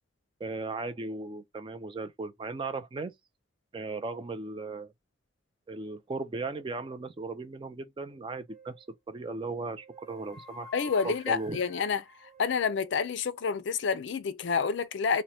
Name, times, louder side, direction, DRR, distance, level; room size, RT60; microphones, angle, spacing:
voice 1, 0.4-3.1 3.7-4.9 5.7-10.7 11.0-11.6, right 3 dB, 25° right, 0.3 m, -37 dB
sound 1, 8.5-8.9 9.7-13.1, left 2 dB, ahead, 1.1 m, -50 dB
voice 2, 10.7-12.0 12.4-15.2, left 5 dB, 60° left, 0.4 m, -28 dB
2.9 x 2.1 x 4.1 m
head